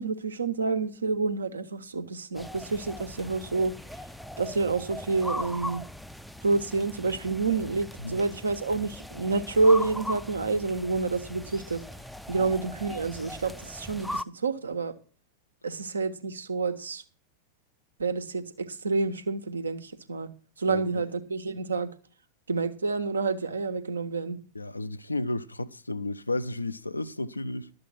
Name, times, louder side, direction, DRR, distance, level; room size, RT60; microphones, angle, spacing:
voice 1, 0.0-3.7 4.4-5.8 6.4-11.8 12.3-14.9 15.6-17.0 18.0-20.3 20.6-21.9 22.5-24.4, right 4 dB, 75° right, 1.2 m, -28 dB
sound 1, 2.3-14.2, left 1 dB, ahead, 0.5 m, -39 dB
voice 2, 20.7-21.0 24.5-27.7, left 2 dB, 80° left, 0.6 m, -33 dB
12.0 x 7.7 x 6.0 m
figure-of-eight pair, 90°, 0 cm